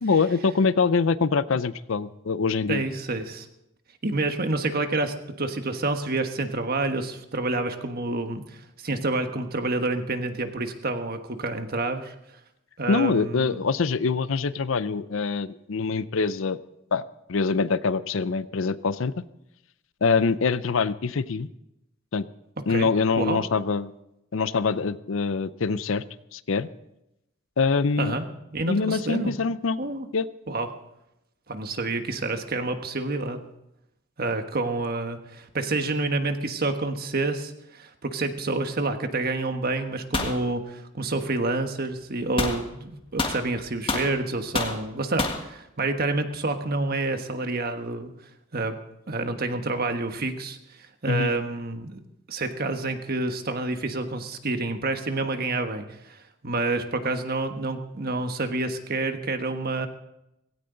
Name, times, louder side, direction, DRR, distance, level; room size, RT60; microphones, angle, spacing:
voice 1, 0.0-2.8 12.9-16.6 16.9-17.0 17.3-19.2 20.0-21.5 22.1-22.3 22.7-23.9 24.3-26.0 26.3-26.7 27.6-28.2 28.7-29.8 30.1-30.3 51.1-51.3, left 4 dB, 65° left, 16 dB, 0.6 m, -24 dB
voice 2, 2.7-3.5 4.0-12.1 12.8-13.6 22.7-22.9 23.2-23.4 28.0-28.3 28.5-29.3 29.8-30.1 30.5-30.7 31.5-33.4 34.2-48.1 48.5-48.7 49.1-52.0 52.3-59.9, right 2 dB, 45° right, 7 dB, 1.3 m, -28 dB
sound 1, 40.1-40.4 42.4-42.6 43.2-44.1 44.5-44.8 45.2-45.4, left 2 dB, 25° left, 1.6 m, -27 dB
17.5 x 16.5 x 3.9 m, 0.85 s
head